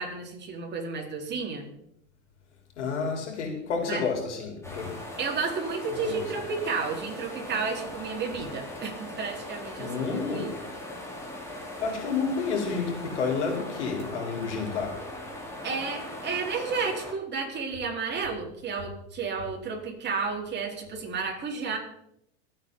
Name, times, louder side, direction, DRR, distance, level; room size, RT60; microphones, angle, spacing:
voice 1, 0.0-1.6 3.9-4.1 5.2-10.5 12.1-12.2 15.6-21.8, right 5 dB, 30° right, 0 dB, 4.5 m, -32 dB
voice 2, 2.8-5.0 6.0-6.2 9.8-10.5 11.8-15.0, left 5 dB, 85° left, 2 dB, 4.5 m, -30 dB
sound 1, 4.6-17.1, left 1 dB, 10° left, 4.0 m, -40 dB
26.0 x 8.7 x 4.0 m, 0.78 s
hypercardioid pair, 100°, 34 cm